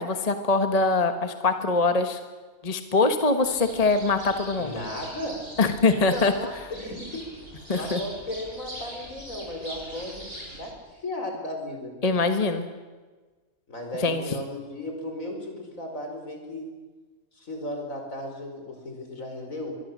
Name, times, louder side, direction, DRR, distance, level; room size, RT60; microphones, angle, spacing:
voice 1, 0.0-2.2 2.6-4.7 5.6-6.3 7.7-8.0 12.0-12.7 14.0-14.2, left 3 dB, 30° left, 8 dB, 1.4 m, -23 dB
sound 1, 3.4-10.7, right 1 dB, 40° right, 6.7 m, -42 dB
voice 2, 4.6-5.5 6.1-7.1 7.7-11.9 13.7-16.7 17.3-19.7, left 1 dB, 75° left, 3 dB, 5.3 m, -35 dB
23.0 x 23.0 x 7.5 m, 1.3 s
omnidirectional pair, 1.4 m